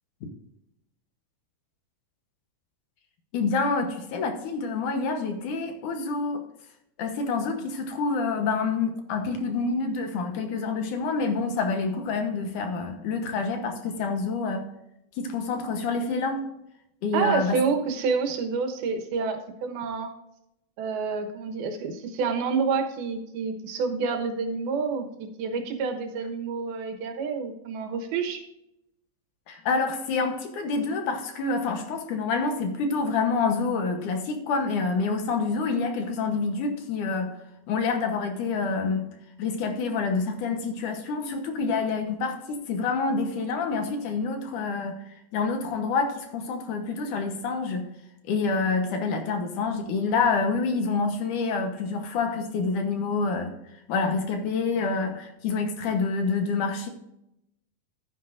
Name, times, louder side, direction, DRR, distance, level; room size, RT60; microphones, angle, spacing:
voice 1, 3.3-6.4 7.0-14.6 15.2-16.5 17.0-17.6 29.5-37.3 37.7-39.1 39.4-45.0 45.3-47.9 48.3-53.5 53.9-56.9, left 4 dB, 65° left, 5 dB, 2.4 m, -27 dB
voice 2, 17.1-20.1 20.8-28.4, right 5 dB, 85° right, 5 dB, 3.2 m, -28 dB
11.5 x 10.0 x 2.6 m, 0.82 s
omnidirectional pair, 4.2 m